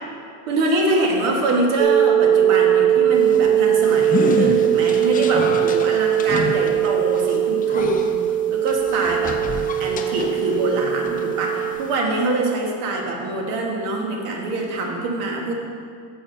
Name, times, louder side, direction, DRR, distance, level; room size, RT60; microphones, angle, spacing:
voice 1, 0.5-9.4 9.8-15.5, right 2 dB, 80° right, 0 dB, 1.8 m, -24 dB
sound 1, 1.8-11.7, right 10 dB, 60° right, 1.0 m, -20 dB
sound 2, 3.2-10.7 11.1-12.0, left 4 dB, 20° left, 0.5 m, -29 dB
6.9 x 6.7 x 5.3 m, 2.2 s
supercardioid pair, 120°, 47 cm